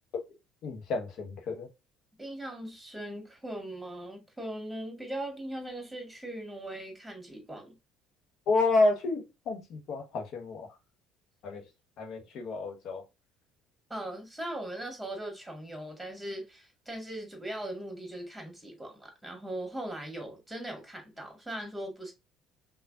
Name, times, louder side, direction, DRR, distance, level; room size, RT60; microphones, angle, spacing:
voice 1, 0.6-1.7 8.5-10.7 11.4-11.6 12.0-13.0, left 3 dB, 50° left, 1.1 m, -29 dB
voice 2, 2.2-7.8 13.9-22.1, right 1 dB, 5° right, 1.9 m, -39 dB
5.5 x 2.5 x 2.4 m
figure-of-eight pair, 55°, 0 cm